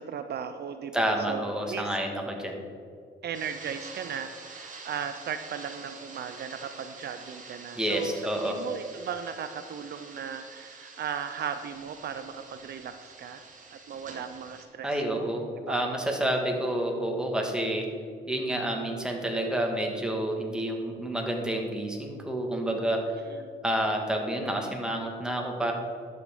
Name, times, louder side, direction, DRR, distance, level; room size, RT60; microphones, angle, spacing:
voice 1, 0.0-2.0 3.2-13.4 13.7-15.3 15.6-16.1 23.3-23.5, right 7 dB, 55° right, 9 dB, 0.5 m, -37 dB
voice 2, 0.9-2.6 7.7-8.6 14.8-17.9 18.3-23.1 23.6-25.7, right 1 dB, 5° right, 1 dB, 1.6 m, -29 dB
sound 1, 3.3-14.6, right 4 dB, 40° right, 1.6 m, -47 dB
11.5 x 6.8 x 3.7 m, 2.3 s
cardioid pair, 90°, 20 cm